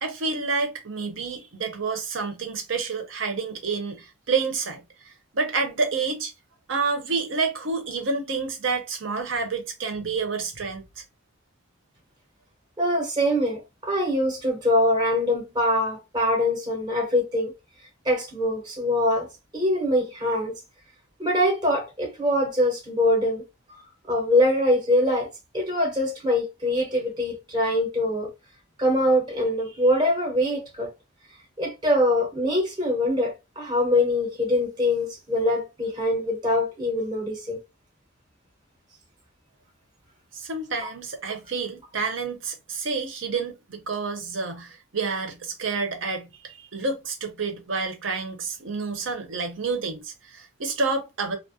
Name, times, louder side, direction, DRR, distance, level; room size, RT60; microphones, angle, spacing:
voice 1, 0.0-6.3 6.7-11.0 40.3-51.4, right 4 dB, 65° right, 0.7 m, -29 dB
voice 2, 12.8-17.5 18.0-19.3 19.5-20.5 21.2-23.4 24.1-25.3 25.5-28.3 28.8-30.9 31.6-37.6, left 1 dB, 20° right, 0.7 m, -23 dB
2.3 x 2.1 x 2.6 m
head